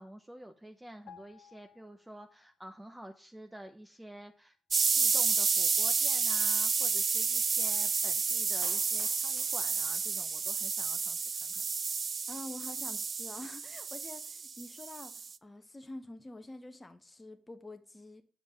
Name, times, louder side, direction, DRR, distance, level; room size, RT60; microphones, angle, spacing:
voice 1, 0.0-4.6 5.0-11.6, right 1 dB, 10° right, 0.9 m, -49 dB
sound 1, 1.1-2.7 3.0-3.2, left 8 dB, 65° left, 1.2 m, -57 dB
sound 2, 4.7-15.3, right 5 dB, 50° right, 0.4 m, -30 dB
Clapping, 8.6-10.6 10.9-11.0, left 4 dB, 45° left, 1.5 m, -56 dB
voice 2, 12.3-18.2, left 1 dB, 20° left, 1.1 m, -47 dB
7.6 x 5.1 x 5.2 m
supercardioid pair, 50°, 0 cm